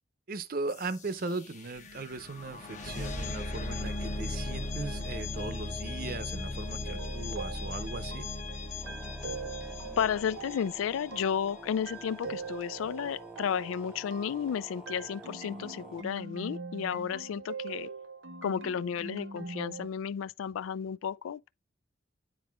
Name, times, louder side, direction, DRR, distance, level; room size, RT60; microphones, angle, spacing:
voice 1, 0.3-8.3, right 3 dB, 45° right, 0.7 m, -38 dB
sound 1, 0.7-11.5, left 2 dB, 35° left, 1.0 m, -38 dB
sound 2, 6.9-19.9, right 4 dB, 80° right, 0.9 m, -43 dB
sound 3, 8.8-16.0, right 1 dB, 5° right, 0.7 m, -49 dB
voice 2, 10.0-17.9 18.4-21.5, left 8 dB, 85° left, 0.3 m, -33 dB
9.5 x 4.7 x 2.3 m
head